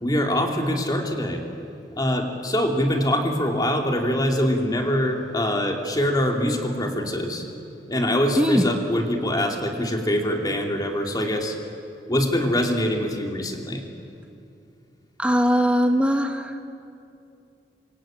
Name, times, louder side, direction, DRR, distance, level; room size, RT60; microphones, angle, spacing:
voice 1, 0.0-1.4 2.0-7.5 7.9-11.6 12.1-13.8, equal, 20° left, 2 dB, 2.9 m, -24 dB
voice 2, 8.4-8.7 15.2-16.6, equal, 5° right, 5 dB, 1.3 m, -20 dB
27.5 x 23.5 x 9.1 m, 2.6 s
head